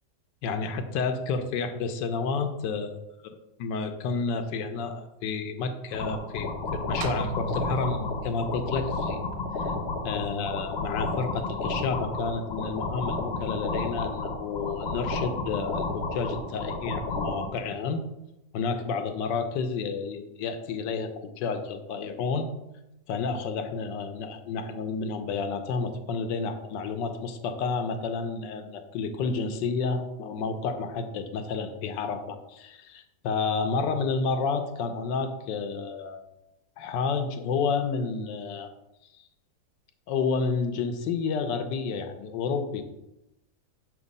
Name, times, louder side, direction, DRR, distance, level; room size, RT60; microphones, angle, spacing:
voice 1, 0.4-3.0 3.6-9.2 9.5-9.7 10.0-18.0 18.5-22.5 23.1-36.2 36.8-38.7 40.1-42.8, left 4 dB, 85° left, 7 dB, 1.4 m, -30 dB
sound 1, 5.9-17.5, left 3 dB, 50° left, 0.9 m, -32 dB
sound 2, 7.0-11.4, right 3 dB, 80° right, 1.2 m, -38 dB
7.1 x 3.0 x 5.3 m, 0.91 s
omnidirectional pair, 1.9 m